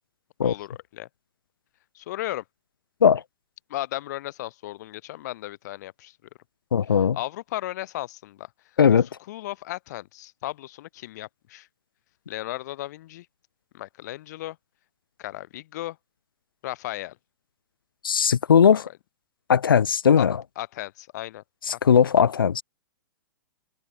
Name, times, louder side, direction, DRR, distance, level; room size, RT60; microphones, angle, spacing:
voice 1, 0.4-1.1 1.9-2.4 3.7-6.2 7.1-8.5 8.9-9.0 9.3-11.7 12.3-13.3 13.7-14.6 15.2-16.0 16.6-17.2 18.7-18.9 20.2-20.3 20.6-21.4, left 16 dB, 50° left, 1.0 m, -35 dB
voice 2, 6.7-7.2 8.8-9.1 18.0-18.8 19.5-20.4 21.7-22.6, left 7 dB, 75° left, 0.6 m, -18 dB
figure-of-eight pair, 110°, 12 cm